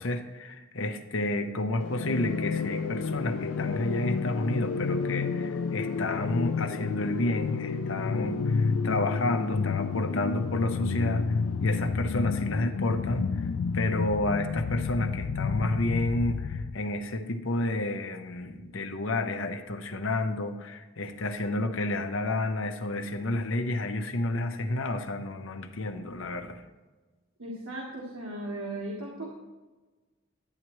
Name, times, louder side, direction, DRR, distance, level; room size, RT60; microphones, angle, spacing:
voice 1, 0.0-13.5 13.7-26.6, left 2 dB, 65° left, 7 dB, 0.8 m, -30 dB
sound 1, 1.8-16.8, left 5 dB, 85° left, 0.4 m, -30 dB
voice 2, 27.4-29.3, right 1 dB, 85° right, -3 dB, 1.6 m, -37 dB
10.5 x 8.9 x 3.1 m, 1.2 s
head